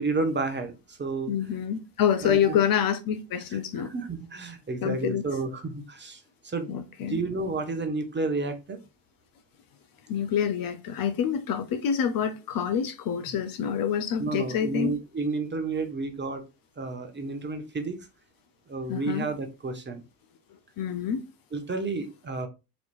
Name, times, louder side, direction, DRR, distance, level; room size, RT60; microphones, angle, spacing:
voice 1, 0.0-1.3 2.2-2.6 3.5-3.6 3.8-6.7 7.1-8.8 14.2-16.4 16.8-18.0 18.7-20.0 21.5-22.5, right 3 dB, 25° right, 0.9 m, -31 dB
voice 2, 1.3-3.9 4.8-5.2 6.7-7.2 10.1-14.9 18.9-19.3 20.8-21.2, left 8 dB, 45° left, 0.6 m, -27 dB
4.1 x 2.9 x 2.5 m
hypercardioid pair, 60°, 48 cm